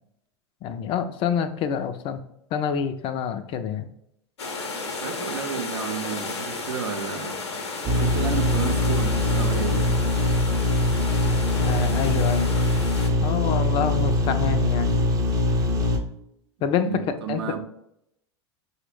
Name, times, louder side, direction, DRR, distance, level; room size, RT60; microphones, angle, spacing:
voice 1, 0.6-2.2 2.5-3.9 11.6-12.5 13.2-14.9 16.6-17.6, left 7 dB, 35° left, 9 dB, 0.4 m, -27 dB
sound 1, 4.4-13.1, left 3 dB, 75° left, 0.7 m, -33 dB
voice 2, 4.8-7.4 7.9-9.9 16.8-17.6, right 7 dB, 65° right, 5 dB, 0.6 m, -32 dB
sound 2, 7.9-16.0, left 2 dB, 25° right, 0.6 m, -22 dB
5.9 x 2.1 x 3.3 m, 0.77 s
figure-of-eight pair, 85°, 15 cm